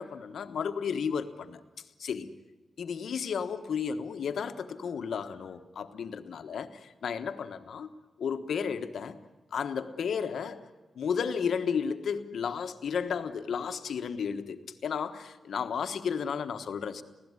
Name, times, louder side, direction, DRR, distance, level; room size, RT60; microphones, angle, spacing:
voice 1, 0.0-1.6 2.0-2.3 2.8-7.9 8.2-9.2 9.5-10.6 11.0-17.0, left 6 dB, 75° left, 1.2 m, -33 dB
25.0 x 16.5 x 9.7 m
wide cardioid pair, 120°, 0 cm